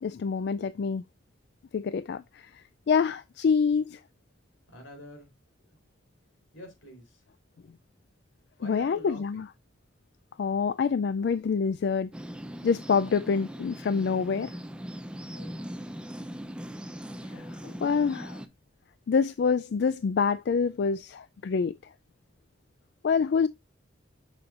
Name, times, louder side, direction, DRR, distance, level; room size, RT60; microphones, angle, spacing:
voice 1, 0.0-1.0 1.7-4.0 8.6-9.5 10.4-12.1 12.6-14.6 17.3-18.4 19.1-21.7 23.0-23.5, left 5 dB, 55° left, 0.3 m, -26 dB
voice 2, 4.7-5.3 5.6-5.8 6.5-7.2 8.6-9.4 15.3-16.0, equal, 85° left, 3.8 m, -47 dB
sound 1, 12.1-18.5, equal, 5° right, 0.5 m, -40 dB
6.9 x 6.9 x 2.5 m
head